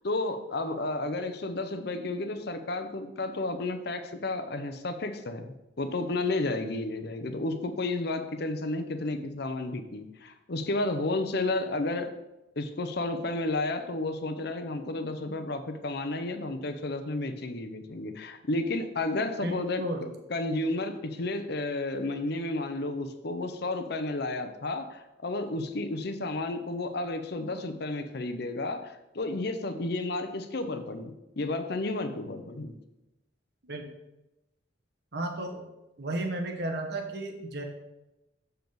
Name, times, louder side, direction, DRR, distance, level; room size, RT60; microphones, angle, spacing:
voice 1, 0.0-12.1 12.6-19.8 20.3-32.7, left 2 dB, 55° left, 8 dB, 0.7 m, -32 dB
voice 2, 19.4-20.1 33.6-33.9 35.1-35.7 36.0-37.6, right 1 dB, 55° right, 3 dB, 1.2 m, -33 dB
6.9 x 6.7 x 4.0 m, 0.95 s
head